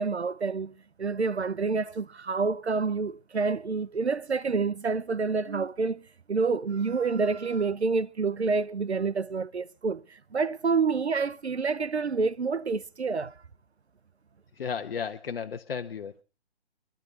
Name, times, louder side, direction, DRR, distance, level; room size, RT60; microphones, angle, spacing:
voice 1, 0.0-6.0 6.3-13.3, right 4 dB, 90° right, 0.8 m, -28 dB
voice 2, 14.6-16.2, left 6 dB, 60° left, 1.0 m, -34 dB
27.5 x 12.0 x 2.5 m
figure-of-eight pair, 135°, 32 cm